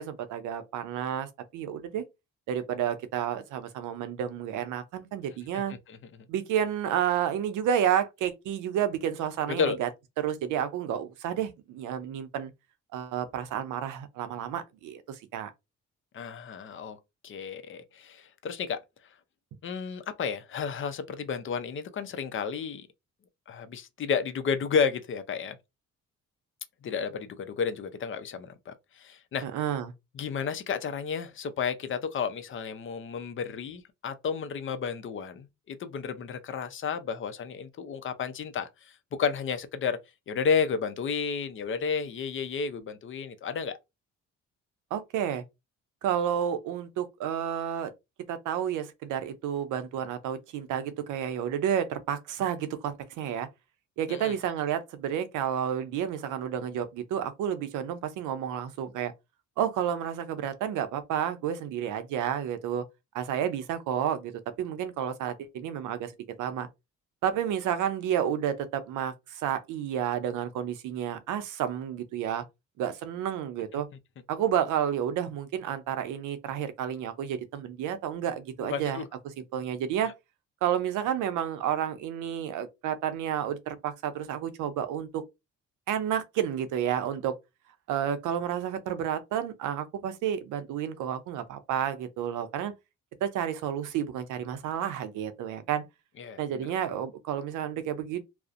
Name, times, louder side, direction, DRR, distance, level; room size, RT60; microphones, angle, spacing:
voice 1, 0.0-2.0 2.5-5.7 6.3-9.9 10.2-12.5 12.9-15.5 29.4-29.9 44.9-45.4 46.0-47.9 48.3-53.5 54.0-59.1 59.6-62.8 63.1-64.3 64.6-66.1 66.4-66.7 67.2-72.4 72.8-73.9 74.3-79.0 79.4-80.1 80.6-85.2 85.9-87.4 87.9-92.7 93.2-95.8 96.4-98.2, right 9 dB, 85° right, 0.5 m, -30 dB
voice 2, 16.1-17.0 17.2-18.8 19.6-22.9 23.5-25.6 26.8-29.5 30.1-40.0 40.3-43.8 54.1-54.4 73.7-73.8 78.6-79.0 96.2-96.4, left 6 dB, 40° left, 0.5 m, -32 dB
2.5 x 2.0 x 2.4 m
cardioid pair, 90°, 30 cm